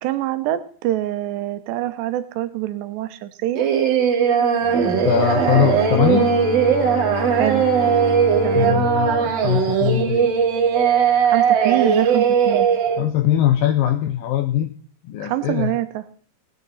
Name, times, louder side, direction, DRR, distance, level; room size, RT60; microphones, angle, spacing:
voice 1, 0.0-3.6 7.3-7.7 8.4-8.9 11.2-12.7 15.2-16.0, right 14 dB, 85° right, 11 dB, 3.1 m, -25 dB
Singing, 3.6-13.0, right 7 dB, 60° right, 3.4 m, -18 dB
Bowed string instrument, 4.6-10.6, left 3 dB, 50° left, 4.5 m, -31 dB
voice 2, 5.0-6.4 8.5-10.3 13.0-14.7 15.0-15.7, left 11 dB, 80° left, 8 dB, 2.1 m, -21 dB
19.5 x 9.9 x 4.1 m, 0.43 s
omnidirectional pair, 4.8 m